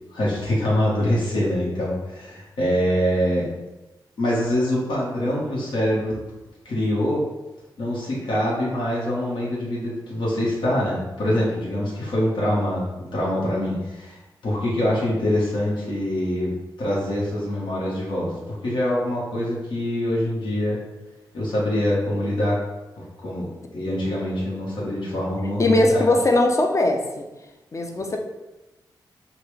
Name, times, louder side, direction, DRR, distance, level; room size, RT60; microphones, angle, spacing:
voice 1, 0.1-3.5 4.2-6.1 6.6-7.2 7.8-14.2 14.4-16.5 16.8-20.8 21.3-22.6 23.0-26.1, left 1 dB, 75° left, -6 dB, 1.4 m, -24 dB
voice 2, 25.6-27.3 27.7-28.2, left 2 dB, 40° left, 3 dB, 0.7 m, -20 dB
5.7 x 2.4 x 3.3 m, 1.0 s
cardioid pair, 70°, 8 cm